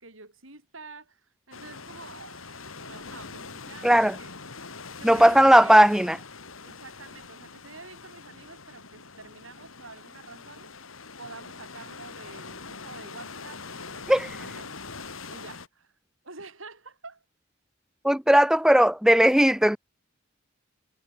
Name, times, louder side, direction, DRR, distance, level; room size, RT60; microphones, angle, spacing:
voice 1, 0.0-4.3 5.0-5.9 6.6-10.7 11.2-14.7 15.3-15.9 16.2-17.2, right 3 dB, 75° right, 7.0 m, -47 dB
sound 1, 1.5-15.7, left 4 dB, 85° left, 3.5 m, -43 dB
voice 2, 3.8-4.2 5.0-6.2 14.1-14.3 18.0-19.8, equal, 5° right, 0.6 m, -17 dB
head